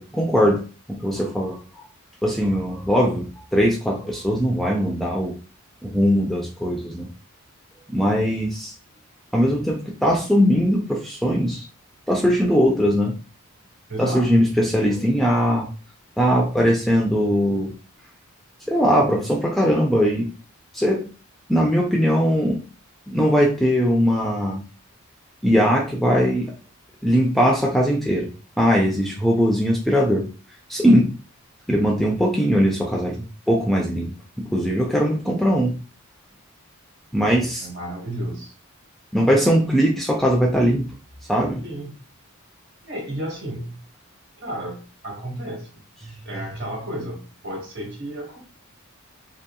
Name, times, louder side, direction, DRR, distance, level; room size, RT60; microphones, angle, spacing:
voice 1, 0.0-1.8 2.2-5.3 5.8-7.1 7.9-8.7 9.3-11.7 12.1-13.2 14.0-15.7 16.2-17.7 18.7-20.3 20.7-21.1 21.5-22.6 23.1-24.6 25.4-26.5 27.0-28.3 28.6-30.3 30.7-31.1 31.7-34.1 34.5-35.8 37.1-37.7 39.1-40.9 41.3-41.6 46.0-46.5, equal, ahead, -1 dB, 0.3 m, -20 dB
voice 2, 13.9-14.5 37.6-38.5 41.6-41.9 42.8-43.8 44.4-45.7 46.2-48.4, right 1 dB, 50° right, -1 dB, 1.3 m, -32 dB
2.8 x 2.7 x 2.3 m, 0.34 s
head